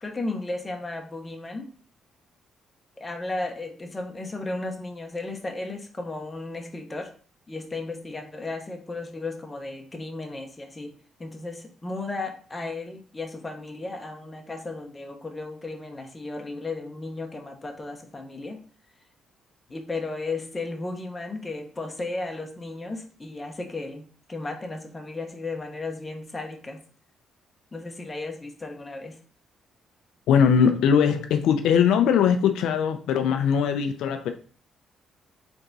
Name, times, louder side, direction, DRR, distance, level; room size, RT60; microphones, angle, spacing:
voice 1, 0.0-1.7 3.0-7.1 7.5-10.9 11.2-18.6 19.7-24.0 24.3-26.8 27.7-29.2 33.2-33.4, left 2 dB, 20° left, 1.0 m, -34 dB
voice 2, 30.3-34.3, left 7 dB, 85° left, 0.4 m, -20 dB
3.9 x 3.5 x 3.9 m
cardioid pair, 90°, 0 cm